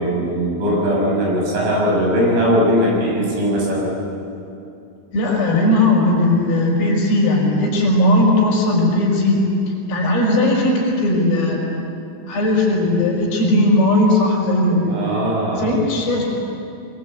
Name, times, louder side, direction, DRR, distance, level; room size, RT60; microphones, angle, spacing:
voice 1, 0.0-3.9 14.9-15.7, equal, 65° right, -3 dB, 8.9 m, -19 dB
voice 2, 5.1-9.4 9.9-11.6 12.3-15.3 15.6-16.2, left 1 dB, 60° left, -2 dB, 7.7 m, -17 dB
24.0 x 23.5 x 8.5 m, 2.7 s
omnidirectional pair, 5.8 m